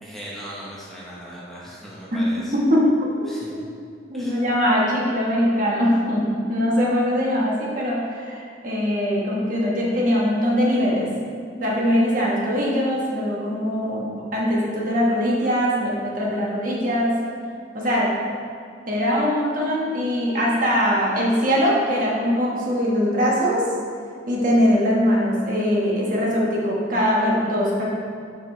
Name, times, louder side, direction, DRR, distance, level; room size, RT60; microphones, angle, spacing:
voice 1, 0.0-2.5 3.3-3.5 4.1-4.4, equal, ahead, -7 dB, 0.8 m, -38 dB
voice 2, 2.5-2.9 3.5-3.6 4.1-11.1 11.6-17.2 17.7-18.1 18.9-23.6 24.3-27.8, equal, 45° right, -4 dB, 1.3 m, -21 dB
7.0 x 5.4 x 3.2 m, 2.4 s
head